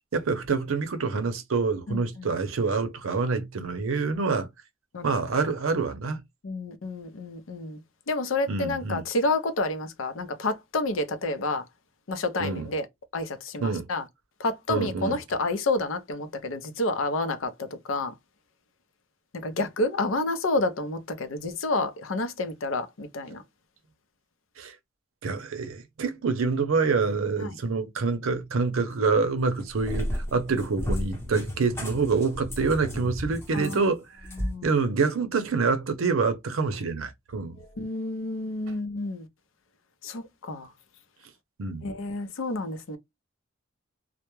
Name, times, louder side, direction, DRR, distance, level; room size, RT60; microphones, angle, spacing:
voice 1, 0.1-4.5 5.0-6.2 8.5-9.0 12.4-12.7 13.6-13.9 14.7-15.2 24.6-24.8 25.2-34.3 34.6-37.6 41.6-41.8, right 4 dB, 85° right, 0.6 m, -26 dB
voice 2, 1.9-2.3 4.9-5.2 6.4-7.8 8.1-11.6 12.1-12.9 13.1-14.0 14.4-18.1 19.4-23.4 27.4-27.5 33.5-33.9 34.4-34.7 37.8-39.3 40.0-40.7 41.8-43.0, left 2 dB, 75° left, 0.5 m, -29 dB
Cat, 29.4-34.6, equal, 10° left, 0.7 m, -33 dB
2.2 x 2.0 x 2.9 m
head